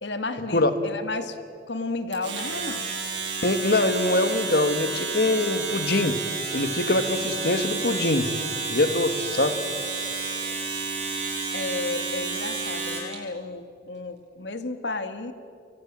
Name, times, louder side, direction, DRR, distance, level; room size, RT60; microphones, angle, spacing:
voice 1, 0.0-1.4 1.7-2.8 11.5-15.3, left 3 dB, 80° left, 9 dB, 1.9 m, -32 dB
Domestic sounds home sounds, 2.1-13.2, right 4 dB, 80° right, 7.8 m, -31 dB
voice 2, 3.4-6.2 6.5-8.3 8.7-9.6, left 2 dB, 60° left, 9 dB, 1.8 m, -23 dB
29.5 x 23.0 x 7.5 m, 2.3 s
head